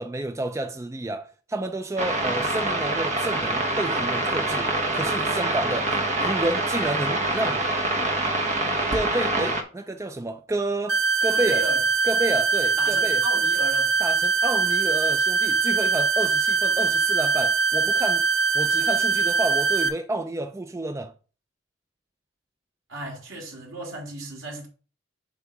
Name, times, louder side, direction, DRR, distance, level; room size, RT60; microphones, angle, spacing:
voice 1, 0.0-7.7 8.9-11.6 12.0-13.2 14.0-18.3 18.5-21.1, right 2 dB, 15° right, 0.3 m, -30 dB
sound 1, 2.0-9.6, right 2 dB, 35° right, 1.1 m, -25 dB
sound 2, 10.9-19.9, right 4 dB, 55° right, 1.3 m, -22 dB
voice 2, 11.3-11.8 12.8-13.9 22.9-24.7, right 1 dB, 75° right, 2.6 m, -35 dB
7.1 x 3.6 x 5.8 m
head